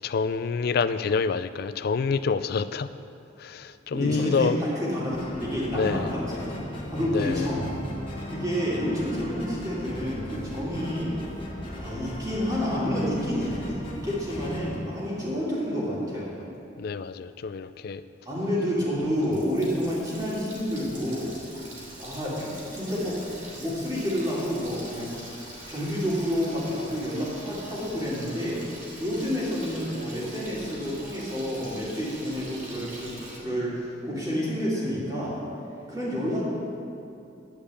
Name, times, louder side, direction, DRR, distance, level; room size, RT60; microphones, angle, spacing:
voice 1, 0.0-2.9 3.4-4.6 5.7-6.1 7.0-7.5 16.8-18.0, left 5 dB, 50° left, 13 dB, 0.3 m, -27 dB
voice 2, 3.9-6.6 6.9-7.7 8.3-11.2 11.8-16.3 18.3-21.3 22.0-23.2 23.5-25.1 25.7-28.6 29.0-35.4 35.9-36.4, equal, 20° right, -7 dB, 2.6 m, -29 dB
sound 1, 5.1-14.8, equal, 25° left, 1.6 m, -37 dB
Water tap faucet, 18.9-33.4, right 1 dB, 45° right, 2.8 m, -44 dB
10.0 x 5.2 x 8.3 m, 2.6 s
head